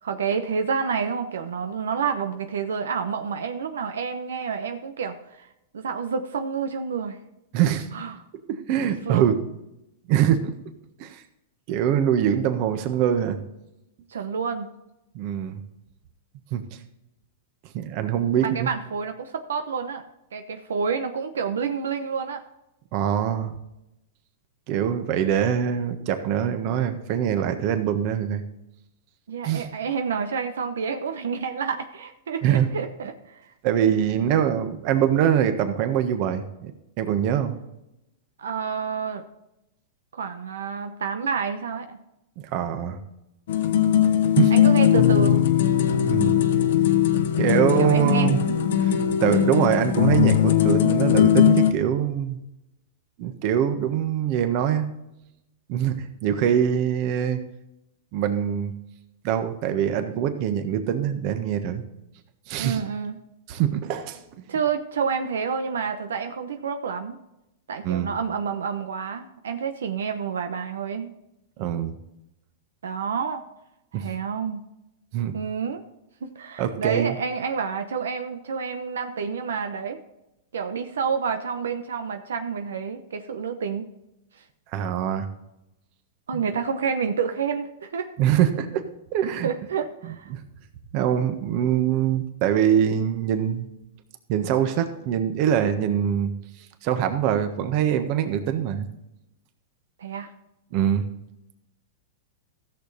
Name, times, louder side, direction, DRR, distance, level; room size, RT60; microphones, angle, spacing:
voice 1, 0.0-5.5 5.7-7.2 7.9-8.2 9.1-9.3 14.1-14.7 18.4-20.1 20.3-22.4 29.3-33.5 34.2-34.6 38.4-39.2 40.1-42.0 44.5-45.5 47.8-48.7 49.2-49.5 62.6-63.2 64.5-67.2 67.7-71.1 72.8-73.4 73.9-74.6 75.3-75.8 76.2-80.0 80.5-83.9 86.3-88.1 89.2-90.3 100.0-100.3, right 6 dB, 90° right, 7 dB, 0.9 m, -29 dB
voice 2, 7.5-7.9 8.5-9.3 10.1-10.5 11.0-11.2 11.7-13.4 15.1-15.6 16.5-16.6 17.7-18.7 22.9-23.5 24.7-28.4 29.4-29.6 32.4-32.7 33.6-36.7 37.0-37.6 42.5-43.0 44.4-44.5 46.0-46.4 47.4-48.4 48.8-52.4 53.2-54.9 55.7-57.4 58.1-58.7 59.2-61.8 62.5-62.8 63.5-64.2 67.8-68.1 71.6-72.0 73.9-74.1 75.1-75.4 76.6-77.1 84.7-85.3 86.3-86.4 88.2-88.8 89.1-89.5 90.3-90.4 90.9-93.7 94.3-96.3 96.8-98.9 100.7-101.1, right 9 dB, 50° right, 8 dB, 1.4 m, -23 dB
sound 1, 43.5-51.7, left 10 dB, 70° left, 1.0 m, -19 dB
14.5 x 6.9 x 4.1 m, 0.89 s
hypercardioid pair, 130°, 0 cm